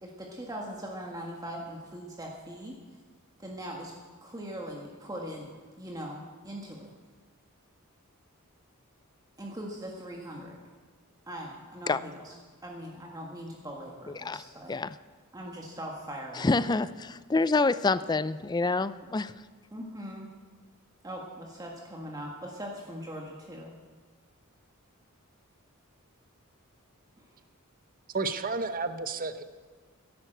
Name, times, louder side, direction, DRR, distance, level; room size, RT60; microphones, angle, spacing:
voice 1, 0.0-2.8 3.4-3.9 4.2-5.5 5.8-6.9 9.4-10.6 11.3-12.3 12.6-14.7 15.3-16.6 19.7-20.3 21.0-23.7 27.2-27.3, equal, 15° right, -1 dB, 1.6 m, -40 dB
voice 2, 16.4-19.3, left 3 dB, 20° left, 16 dB, 0.4 m, -27 dB
voice 3, 28.1-29.4, right 4 dB, 40° right, 10 dB, 0.9 m, -31 dB
15.5 x 11.5 x 7.8 m, 1.5 s
head